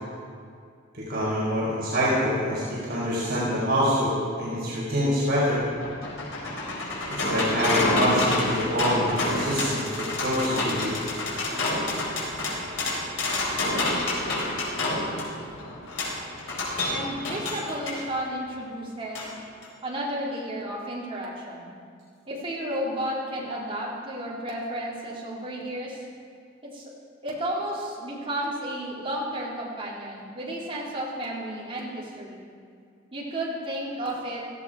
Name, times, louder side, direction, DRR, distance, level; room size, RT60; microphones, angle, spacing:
voice 1, 0.9-5.6 7.1-11.0, equal, 55° right, -7 dB, 4.4 m, -26 dB
sound 1, 5.5-18.0 19.2-19.3 19.6-19.7, left 2 dB, 90° left, 4.6 m, -28 dB
voice 2, 16.9-19.2 19.8-21.7 22.3-26.0 26.6-26.9 27.2-32.4 33.1-34.4, right 1 dB, 30° right, -6 dB, 3.9 m, -32 dB
17.5 x 15.0 x 4.9 m, 2.3 s
head